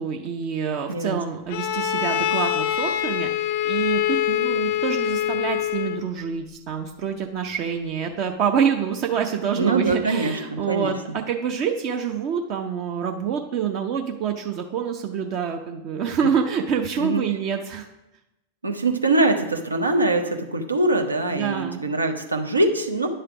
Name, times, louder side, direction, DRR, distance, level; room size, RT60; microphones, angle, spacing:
voice 1, 0.0-17.9 21.3-21.8, right 7 dB, 40° right, 3 dB, 0.6 m, -26 dB
voice 2, 0.9-1.2 9.5-10.9 17.0-17.2 18.6-23.1, right 2 dB, 80° right, 4 dB, 0.8 m, -23 dB
Bowed string instrument, 1.5-6.1, left 10 dB, 50° left, 0.3 m, -24 dB
10.0 x 3.3 x 5.7 m, 0.94 s
figure-of-eight pair, 90°, 0 cm